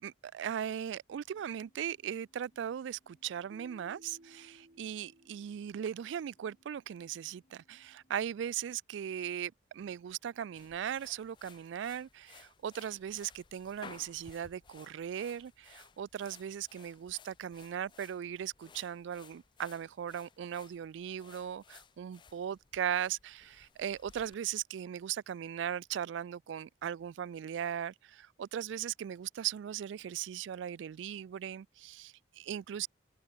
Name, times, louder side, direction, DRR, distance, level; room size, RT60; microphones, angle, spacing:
voice 1, 0.0-32.9, right 9 dB, 75° right, 0.3 m, -38 dB
sound 1, 1.3-8.1, equal, 45° left, 3.8 m, -72 dB
Keyboard (musical), 3.5-6.3, right 1 dB, 50° right, 1.5 m, -59 dB
sound 2, 10.6-24.3, left 5 dB, 25° left, 0.4 m, -58 dB
open air
head